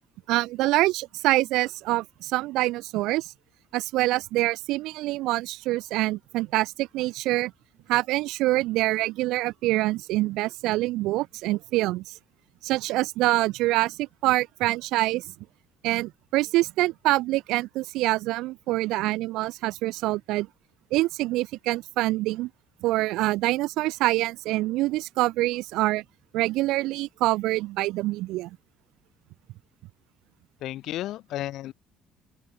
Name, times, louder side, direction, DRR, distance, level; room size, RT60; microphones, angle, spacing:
voice 1, 0.3-3.3 3.7-7.5 7.9-12.1 12.6-15.3 15.8-20.5 20.9-22.5 22.8-26.0 26.3-28.6, right 18 dB, 80° right, 2.6 m, -25 dB
voice 2, 30.6-31.7, left 14 dB, 65° left, 6.0 m, -33 dB
open air
cardioid pair, 150°, 0 cm